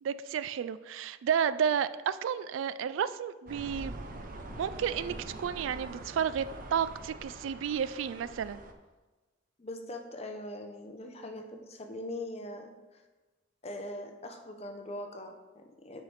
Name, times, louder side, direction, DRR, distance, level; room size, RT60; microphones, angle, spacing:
voice 1, 0.0-4.0 4.6-8.6, right 8 dB, 85° right, 15 dB, 0.3 m, -32 dB
sound 1, 3.5-8.7, right 2 dB, 45° right, 0.6 m, -44 dB
voice 2, 9.6-12.7 13.6-16.0, left 1 dB, 35° left, 4 dB, 0.7 m, -41 dB
8.2 x 5.6 x 3.2 m, 1.2 s
head